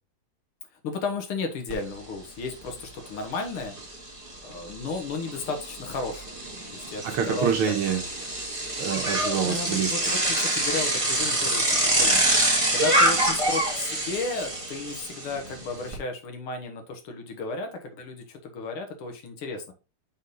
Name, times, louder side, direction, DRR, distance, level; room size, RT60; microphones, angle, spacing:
voice 1, 0.8-3.8 4.4-6.4 6.7-7.6 9.4-19.7, left 3 dB, 85° left, 4 dB, 2.2 m, -34 dB
Bicycle, 1.7-1.8 2.2-15.9, right 1 dB, 15° right, 1.5 m, -26 dB
voice 2, 7.0-8.0 8.8-10.2, right 7 dB, 80° right, 2 dB, 2.0 m, -26 dB
6.4 x 3.9 x 3.9 m, 0.31 s
omnidirectional pair, 2.3 m